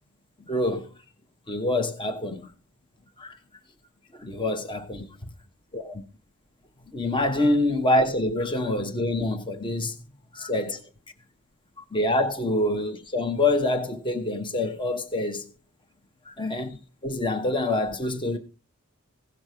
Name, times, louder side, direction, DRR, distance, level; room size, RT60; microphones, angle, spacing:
voice 1, 0.5-0.9 1.5-2.5 3.2-3.4 4.1-5.1 5.7-6.0 6.9-10.0 10.3-10.8 11.9-15.4 16.3-18.4, left 1 dB, 20° left, 1.0 m, -26 dB
16.5 x 6.1 x 4.9 m
head